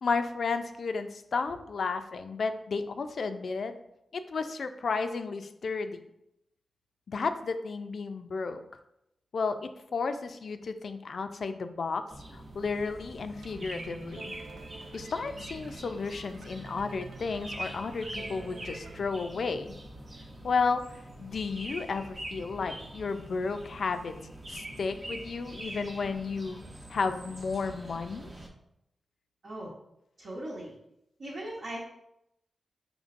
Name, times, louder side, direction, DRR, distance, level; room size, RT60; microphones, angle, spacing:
voice 1, 0.0-3.7 4.1-6.0 7.1-8.6 9.3-12.0 12.3-14.3 14.9-19.7 20.4-24.1 24.5-26.6 26.9-28.3, left 4 dB, 70° left, 8 dB, 0.3 m, -33 dB
sound 1, 12.1-28.5, right 1 dB, 40° right, 0.8 m, -44 dB
sound 2, 13.4-19.0, right 3 dB, 85° right, 0.4 m, -48 dB
voice 2, 29.4-29.7 30.2-30.8 31.2-31.8, right 1 dB, 70° right, -7 dB, 1.0 m, -39 dB
5.1 x 3.1 x 2.5 m, 0.82 s
wide cardioid pair, 80°, 0 cm